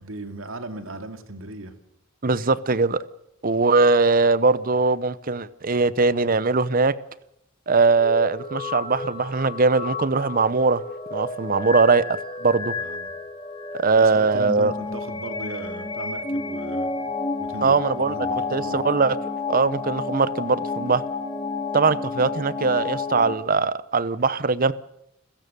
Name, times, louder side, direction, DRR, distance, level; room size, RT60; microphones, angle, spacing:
voice 1, 0.0-1.7 12.8-13.1 14.0-17.1 17.4-18.8, right 2 dB, 70° right, 8 dB, 2.5 m, -37 dB
voice 2, 2.2-3.0 3.4-6.9 7.7-10.8 11.1-12.0 12.4-12.7 13.7-14.7 17.6-18.1 18.5-19.1 19.5-21.0 21.7-24.7, right 4 dB, 40° right, 18 dB, 0.8 m, -21 dB
sound 1, 7.9-23.4, left 3 dB, 25° left, 1.9 m, -31 dB
29.5 x 16.0 x 6.9 m, 0.80 s
head